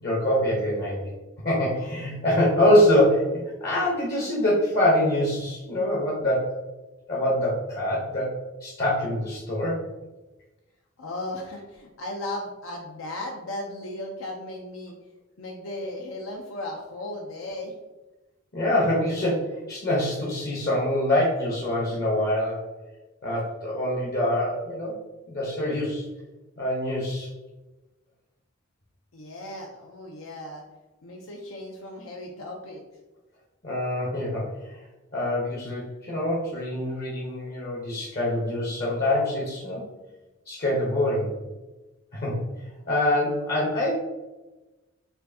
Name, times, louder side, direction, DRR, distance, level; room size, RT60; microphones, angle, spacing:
voice 1, 0.0-1.1 1.4-6.6 7.1-9.8 18.5-22.6 23.2-25.0 25.3-26.1 26.6-27.3 33.6-34.7 35.1-39.8 40.5-41.3 42.1-42.4 42.9-44.0, left 1 dB, 50° left, -4 dB, 0.8 m, -25 dB
voice 2, 11.0-14.9 15.4-17.7 29.1-30.6 31.0-32.8, left 1 dB, 85° left, 0 dB, 0.5 m, -36 dB
4.4 x 2.6 x 2.6 m, 1.1 s
head